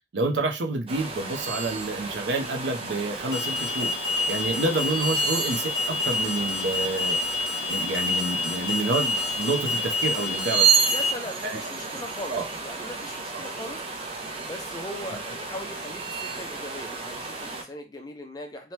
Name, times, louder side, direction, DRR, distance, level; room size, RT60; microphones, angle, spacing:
voice 1, 0.1-7.2 7.7-10.7 11.4-11.6 12.3-12.4, right 2 dB, 80° right, 4 dB, 0.5 m, -28 dB
sound 1, 0.9-17.6, right 3 dB, 30° right, 0.5 m, -36 dB
sound 2, 1.3-2.0 2.4-3.1 4.7-6.4 9.0-9.6 10.2-13.7 14.1-14.6 15.2-15.3 15.8-16.5, right 7 dB, 60° right, 0.9 m, -29 dB
Alarm, 3.3-11.1, left 3 dB, 75° left, 0.5 m, -28 dB
voice 2, 10.9-13.9 14.4-18.7, left 1 dB, 20° left, 4 dB, 0.4 m, -39 dB
2.8 x 2.1 x 3.1 m, 0.26 s
head